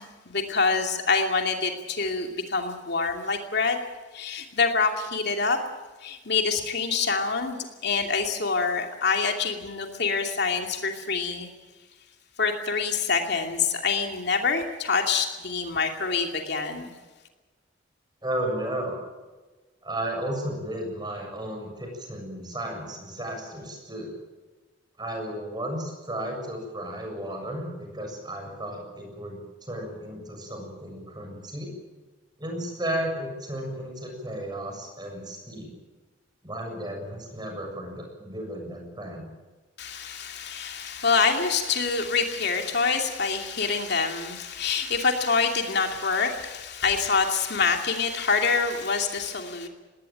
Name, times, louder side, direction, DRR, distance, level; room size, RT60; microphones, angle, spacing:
voice 1, 0.0-3.8 4.1-5.6 6.0-11.5 12.4-16.9 39.8-49.7, left 4 dB, 60° left, 3 dB, 2.6 m, -26 dB
voice 2, 18.2-19.0 19.8-24.1 25.0-31.7 32.4-35.7 36.4-39.3, right 1 dB, 20° right, 3 dB, 7.1 m, -34 dB
20.5 x 18.5 x 9.2 m, 1.2 s
head